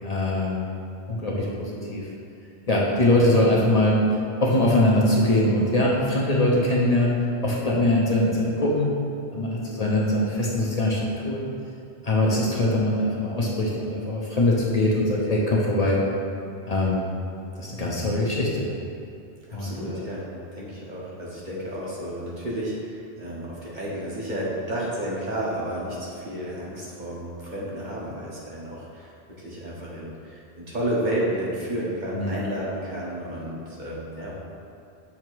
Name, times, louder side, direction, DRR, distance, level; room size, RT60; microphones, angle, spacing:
voice 1, 0.0-0.7 1.1-2.0 2.7-4.0 4.4-7.1 7.4-8.9 9.3-11.5 12.0-16.0 16.7-17.0 17.6-18.7 19.5-20.1 32.1-32.4, left 1 dB, 40° left, -4 dB, 0.8 m, -22 dB
voice 2, 19.5-20.2 20.5-29.1 29.4-34.3, right 1 dB, 45° right, -6 dB, 1.2 m, -31 dB
7.2 x 2.9 x 4.5 m, 2.6 s
omnidirectional pair, 1.1 m